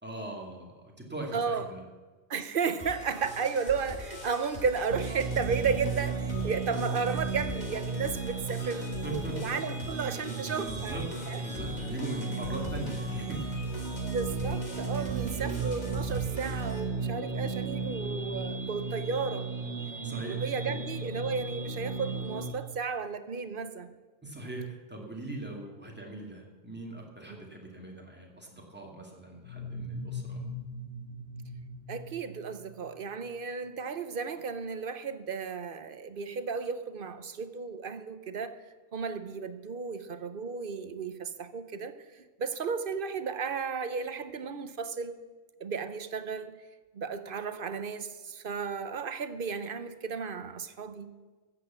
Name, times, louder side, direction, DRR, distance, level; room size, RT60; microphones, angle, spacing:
voice 1, 0.0-1.8 8.6-9.5 10.5-11.1 11.4-13.7 20.0-20.4 20.6-20.8 24.2-30.4, right 2 dB, 10° right, 2.4 m, -40 dB
voice 2, 1.3-1.7 2.3-11.0 11.3-11.4 14.0-19.5 20.3-23.9 27.3-27.4 31.9-38.5 38.9-41.9 42.4-45.2 45.6-46.6 46.9-51.1, right 5 dB, 55° right, 0.9 m, -34 dB
sound 1, 2.8-16.8, left 1 dB, 40° left, 2.3 m, -43 dB
sound 2, 4.9-22.5, right 4 dB, 90° right, 1.6 m, -35 dB
sound 3, 29.4-33.1, left 1 dB, 75° left, 5.5 m, -41 dB
14.0 x 8.2 x 7.4 m
omnidirectional pair, 1.2 m